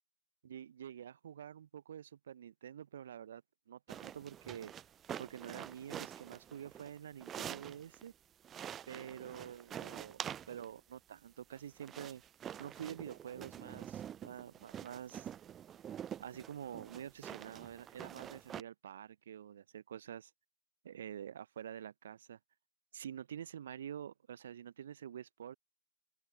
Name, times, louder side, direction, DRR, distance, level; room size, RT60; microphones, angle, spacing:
voice 1, 0.4-4.7 5.2-8.1 8.9-12.2 12.6-15.3 16.2-20.3 20.8-22.4 22.9-25.5, right 9 dB, 45° right, 0.8 m, -48 dB
sound 1, 3.9-8.1 8.4-10.8 11.5-18.6, right 9 dB, 15° right, 0.3 m, -47 dB
open air
figure-of-eight pair, 140°, 0 cm